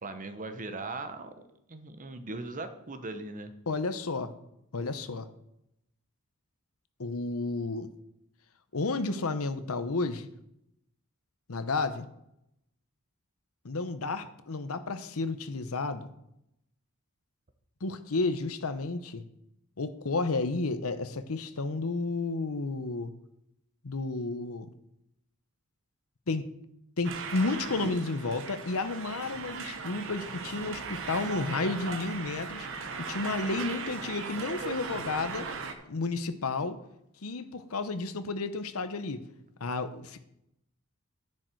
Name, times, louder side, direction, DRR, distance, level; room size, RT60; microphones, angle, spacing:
voice 1, 0.0-3.5, right 2 dB, 40° right, 9 dB, 1.0 m, -39 dB
voice 2, 3.7-4.3 4.7-5.3 7.0-7.9 8.7-10.3 11.5-12.1 13.6-16.1 17.8-19.2 19.8-23.1 23.8-24.7 26.3-26.5 27.0-32.7 33.0-35.5 35.8-36.8 37.2-39.2 39.6-40.2, left 3 dB, 80° left, 11 dB, 0.9 m, -32 dB
sound 1, 27.0-35.7, right 4 dB, 65° right, 1.1 m, -38 dB
10.5 x 8.7 x 4.6 m, 0.82 s
head